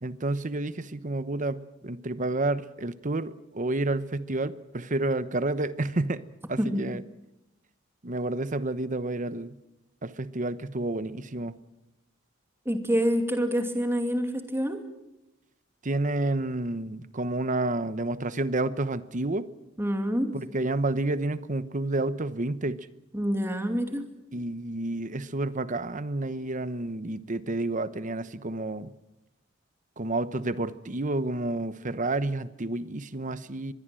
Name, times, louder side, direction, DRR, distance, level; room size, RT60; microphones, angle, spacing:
voice 1, 0.0-6.2 6.5-7.0 8.0-9.6 10.0-11.6 15.8-19.5 20.3-22.8 24.3-28.9 30.0-33.7, right 2 dB, 40° right, 14 dB, 1.0 m, -30 dB
voice 2, 12.6-14.8 19.8-20.4 23.1-24.1, equal, 10° right, 6 dB, 2.6 m, -27 dB
24.5 x 21.5 x 7.7 m, 0.93 s
head